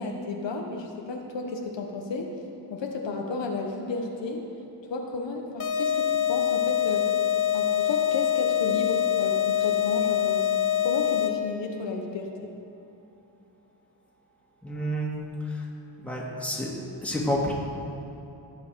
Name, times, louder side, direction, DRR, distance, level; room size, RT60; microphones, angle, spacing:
voice 1, 0.0-2.3 2.7-4.4 4.9-7.1 7.5-10.5 10.8-12.5, left 3 dB, 75° left, 1 dB, 1.2 m, -32 dB
sound 1, 5.6-11.6, left 11 dB, 45° left, 0.9 m, -25 dB
voice 2, 14.6-15.1 15.4-15.7 16.0-16.7 17.0-17.5, equal, 5° left, -4 dB, 2.3 m, -29 dB
16.5 x 6.4 x 4.6 m, 2.9 s
cardioid pair, 90°, 44 cm